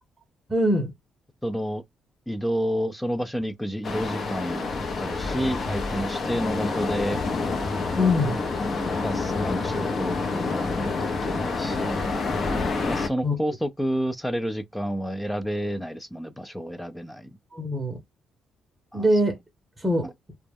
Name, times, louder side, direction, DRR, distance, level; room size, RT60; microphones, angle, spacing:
voice 1, 0.5-0.9 8.0-8.3 13.2-13.4 17.5-18.0 18.9-19.4 19.8-20.1, left 1 dB, 20° right, 0.7 m, -22 dB
voice 2, 1.4-1.8 2.3-7.2 9.0-12.0 12.4-17.3 18.9-19.1, equal, 5° left, 0.3 m, -30 dB
sound 1, 3.8-13.1, left 3 dB, 50° left, 0.6 m, -28 dB
2.2 x 2.0 x 3.3 m
cardioid pair, 90°, 0 cm